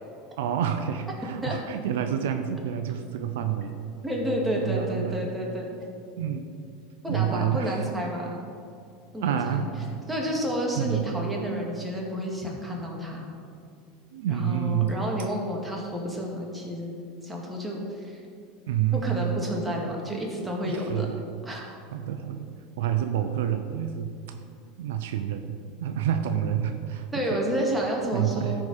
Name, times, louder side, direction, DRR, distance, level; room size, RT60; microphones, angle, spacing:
voice 1, 0.4-3.8 4.6-5.2 6.2-6.5 7.1-7.8 9.2-10.0 10.7-11.1 14.1-15.0 18.7-19.2 20.1-20.2 20.6-21.2 21.9-22.5 22.8-24.4 24.8-25.5 25.8-27.1 27.3-27.4 28.1-28.6, right 9 dB, 80° right, 7 dB, 0.5 m, -28 dB
voice 2, 4.0-5.7 7.0-8.4 9.1-9.6 10.1-13.3 14.3-16.9 17.2-18.2 18.9-21.1 21.4-21.7 27.1-28.6, equal, 10° right, -2 dB, 2.1 m, -30 dB
13.5 x 4.9 x 4.3 m, 2.4 s
hypercardioid pair, 95°, 0 cm